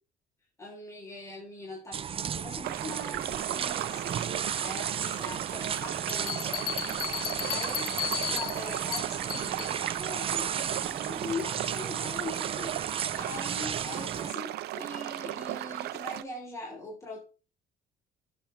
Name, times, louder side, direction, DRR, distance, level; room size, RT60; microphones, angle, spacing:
voice 1, 0.6-6.6 7.4-7.9 8.3-17.2, left 2 dB, 15° left, -2 dB, 3.5 m, -41 dB
sound 1, 1.9-14.3, right 8 dB, 35° right, 0.5 m, -34 dB
sound 2, 2.6-16.2, right 15 dB, 75° right, 0.6 m, -36 dB
Bell, 6.1-9.8, left 12 dB, 60° left, 0.5 m, -35 dB
12.0 x 7.3 x 3.2 m, 0.33 s
cardioid pair, 110°, 17 cm